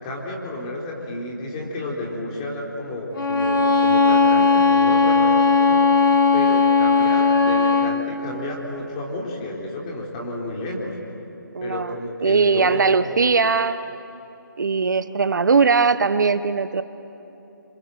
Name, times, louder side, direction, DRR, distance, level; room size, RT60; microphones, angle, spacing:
voice 1, 0.0-5.8 6.3-11.0 11.6-13.1, left 2 dB, 20° left, -2 dB, 3.7 m, -31 dB
Bowed string instrument, 3.1-8.0, left 4 dB, 80° left, 2.5 m, -17 dB
voice 2, 11.5-11.9 12.2-13.8 14.6-16.8, right 5 dB, 60° right, 12 dB, 1.0 m, -19 dB
27.0 x 26.5 x 7.8 m, 2.9 s
hypercardioid pair, 170°, 11 cm